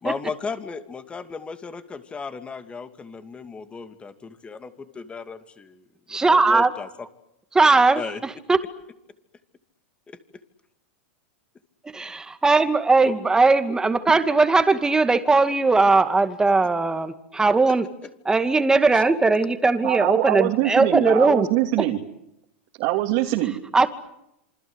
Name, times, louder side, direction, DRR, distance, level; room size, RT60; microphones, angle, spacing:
voice 1, 0.0-6.9 7.9-8.2 10.1-10.2 13.1-13.2 18.9-19.0, left 4 dB, 15° left, 9 dB, 2.7 m, -35 dB
voice 2, 6.1-6.7 7.5-8.6 11.9-17.8 18.3-21.5 21.8-21.9 23.7-23.9, right 3 dB, 10° right, 9 dB, 2.3 m, -19 dB
voice 3, 19.8-22.0 22.8-23.6, right 16 dB, 50° right, 2 dB, 3.1 m, -23 dB
27.5 x 25.5 x 8.3 m, 0.81 s
hypercardioid pair, 130°, 7 cm